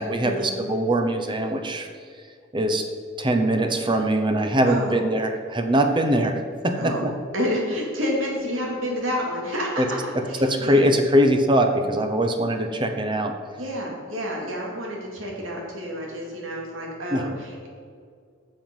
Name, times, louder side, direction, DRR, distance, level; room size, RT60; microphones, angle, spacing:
voice 1, 0.0-1.9 2.5-2.9 3.2-6.4 6.6-6.9 9.8-9.9 10.4-13.3 17.1-17.4, right 1 dB, 25° right, 6 dB, 0.7 m, -22 dB
voice 2, 4.6-5.0 6.8-7.1 7.3-10.9 13.6-17.7, equal, 85° right, -2 dB, 2.4 m, -29 dB
7.7 x 7.3 x 5.4 m, 2.1 s
head